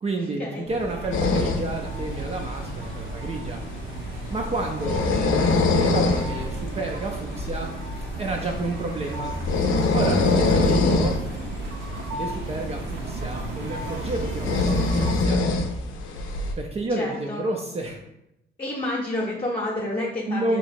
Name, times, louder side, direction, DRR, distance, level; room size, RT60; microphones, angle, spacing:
voice 1, 0.0-3.6 4.3-7.7 8.2-9.3 9.9-11.2 12.1-15.4 16.6-18.0 20.3-20.6, right 2 dB, 30° right, 1 dB, 0.4 m, -30 dB
sound 1, 0.6-15.1, right 2 dB, 60° right, 0.8 m, -34 dB
sound 2, 1.1-16.5, left 3 dB, 85° left, 0.5 m, -25 dB
voice 2, 17.0-17.4 18.6-20.6, left 1 dB, 25° left, -4 dB, 0.8 m, -29 dB
2.9 x 2.6 x 4.2 m, 0.86 s
cardioid pair, 90°, 20 cm